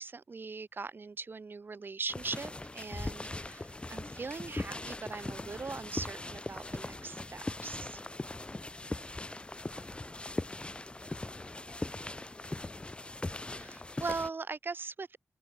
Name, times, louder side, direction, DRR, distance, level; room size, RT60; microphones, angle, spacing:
voice 1, 0.0-8.0 13.5-15.2, right 4 dB, 55° right, 2.0 m, -40 dB
sound 1, 2.1-14.3, left 2 dB, 25° left, 0.8 m, -40 dB
voice 2, 8.9-10.6 10.8-12.2, right 2 dB, 35° right, 3.6 m, -65 dB
open air
cardioid pair, 45°, 4 cm